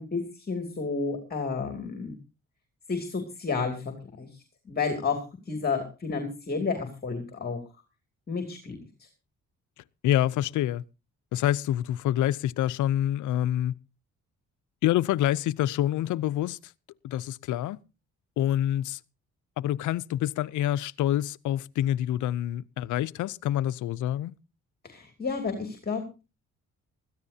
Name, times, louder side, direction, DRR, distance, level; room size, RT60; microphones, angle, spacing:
voice 1, 0.0-2.1 2.9-3.8 4.2-7.6 8.3-8.8 24.8-26.0, left 4 dB, 30° left, 2.7 m, -31 dB
voice 2, 10.0-10.8 11.3-13.7 14.8-16.7 17.0-17.8 18.4-19.0 19.6-24.3, left 12 dB, 75° left, 0.6 m, -27 dB
20.5 x 14.5 x 2.7 m
cardioid pair, 90°, 30 cm